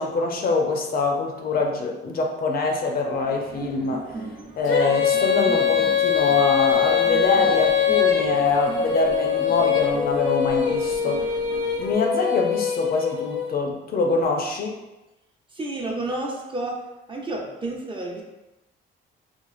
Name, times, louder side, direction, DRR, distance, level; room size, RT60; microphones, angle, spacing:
voice 1, 0.0-4.0 4.6-11.3 11.8-14.8, left 3 dB, 50° left, 2 dB, 0.5 m, -24 dB
sound 1, 3.1-11.9, right 3 dB, 45° right, 0.8 m, -39 dB
Female singing, 4.7-13.5, left 8 dB, 85° left, 0.8 m, -23 dB
voice 2, 15.5-16.8 17.1-18.2, right 2 dB, 25° right, -1 dB, 0.5 m, -30 dB
3.0 x 2.3 x 2.4 m, 1.0 s
cardioid pair, 90°, 20 cm